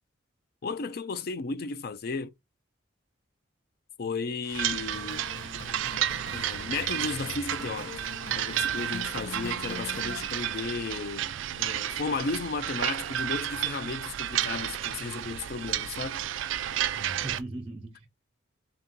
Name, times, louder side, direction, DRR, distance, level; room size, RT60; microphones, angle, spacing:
voice 1, 0.6-2.3 4.0-5.2 6.3-8.0 8.3-16.2, left 4 dB, 50° left, 0.4 m, -34 dB
sound 1, 4.5-17.4, right 11 dB, 75° right, 0.3 m, -32 dB
sound 2, 4.9-10.3, left 4 dB, 75° left, 0.9 m, -43 dB
voice 2, 16.9-18.1, right 2 dB, 30° right, 0.6 m, -39 dB
3.4 x 2.7 x 3.6 m
head